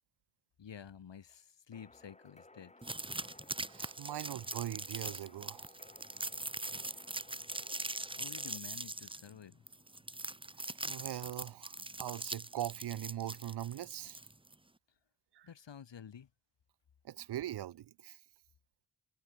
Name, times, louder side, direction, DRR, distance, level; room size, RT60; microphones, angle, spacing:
voice 1, 0.6-2.7 8.2-9.7 15.4-16.3, left 8 dB, 85° left, 4.4 m, -50 dB
sound 1, 1.7-8.6, left 2 dB, 15° left, 1.6 m, -59 dB
sound 2, 2.8-14.5, right 2 dB, 10° right, 1.7 m, -42 dB
voice 2, 3.7-5.8 10.8-14.2 15.4-15.5 17.0-18.2, right 12 dB, 65° right, 0.6 m, -41 dB
wide cardioid pair, 155°, 42 cm